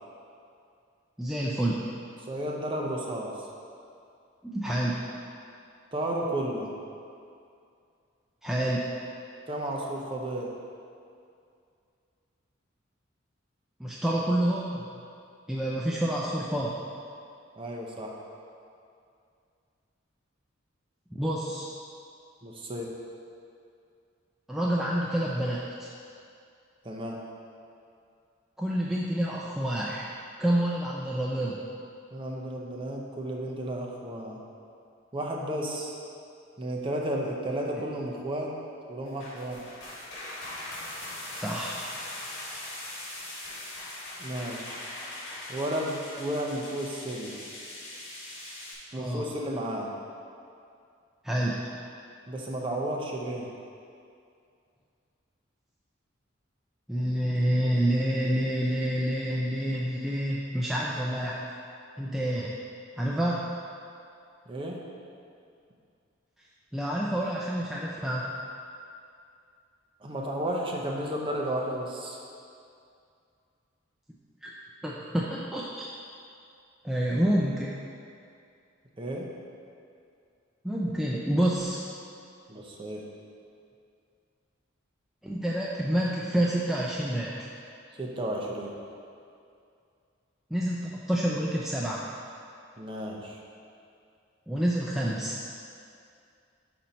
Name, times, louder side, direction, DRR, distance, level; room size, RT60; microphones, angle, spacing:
voice 1, 1.2-1.8 4.4-4.9 8.4-8.8 13.8-14.8 15.5-16.8 21.1-21.7 24.5-25.9 28.6-30.1 30.4-31.6 41.4-41.8 48.9-49.2 51.2-51.6 56.9-61.4 62.0-62.5 63.0-63.4 66.7-68.3 74.4-74.5 74.8-75.9 76.8-77.7 80.6-81.8 85.2-87.3 90.5-92.0 94.5-95.4, right 1 dB, ahead, -5 dB, 0.3 m, -28 dB
voice 2, 2.2-3.4 5.9-6.7 9.5-10.5 17.6-18.2 22.4-22.9 26.8-27.2 32.1-34.4 35.1-35.9 36.6-38.5 38.9-39.6 44.2-44.8 45.5-47.4 48.9-49.9 52.3-53.5 64.5-64.8 70.0-72.2 79.0-79.3 82.5-83.0 88.0-88.7 92.8-93.4, right 1 dB, 25° right, -1 dB, 0.7 m, -33 dB
sound 1, 39.1-48.7, left 1 dB, 85° left, 1.6 m, -40 dB
5.5 x 4.4 x 5.2 m, 2.4 s
head